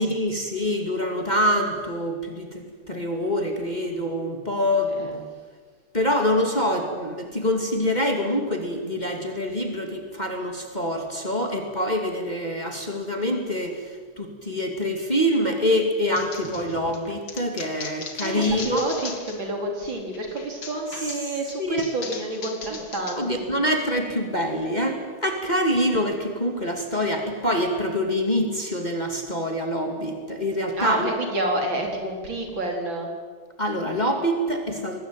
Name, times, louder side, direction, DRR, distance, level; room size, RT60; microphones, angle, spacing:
voice 1, 0.0-5.2 5.9-18.8 21.6-21.8 23.2-31.1 33.6-35.0, equal, 20° left, 3 dB, 2.5 m, -25 dB
voice 2, 4.9-5.2 18.2-23.6 30.8-33.1, right 1 dB, 60° right, 2 dB, 4.7 m, -29 dB
sound 1, 16.2-19.5 19.8-23.2, left 5 dB, 60° left, 3.0 m, -38 dB
24.0 x 20.0 x 9.1 m, 1.5 s
omnidirectional pair, 2.4 m